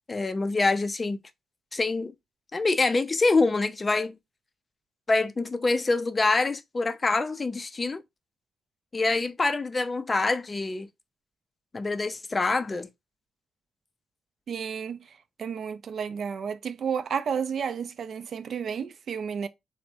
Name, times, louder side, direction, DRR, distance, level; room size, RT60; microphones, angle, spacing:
voice 1, 0.1-1.2 1.7-2.1 2.5-4.2 5.1-8.0 8.9-10.9 11.7-12.9, left 3 dB, 30° left, 0.3 m, -25 dB
voice 2, 14.5-15.0 15.4-19.5, right 7 dB, 60° right, 0.3 m, -31 dB
3.3 x 2.0 x 2.7 m
cardioid pair, 85°, 0 cm